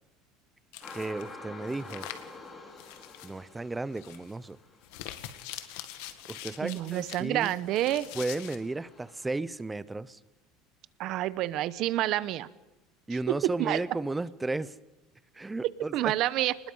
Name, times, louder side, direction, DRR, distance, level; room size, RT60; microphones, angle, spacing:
sound 1, 0.7-1.3 1.7-2.4 2.8-3.3 3.9-4.3 4.8-8.6, left 13 dB, 80° left, 2.0 m, -44 dB
sound 2, 0.8-9.3, left 3 dB, 20° left, 3.5 m, -50 dB
voice 1, 0.9-2.1 3.2-4.6 6.3-7.6 8.1-10.2 13.1-14.7 15.3-16.1, right 2 dB, 10° right, 17 dB, 0.7 m, -34 dB
voice 2, 6.6-8.1 11.0-12.5 13.3-13.8 15.9-16.5, right 14 dB, 55° right, 16 dB, 1.0 m, -28 dB
29.0 x 20.5 x 5.6 m, 1.0 s
cardioid pair, 140°, 0 cm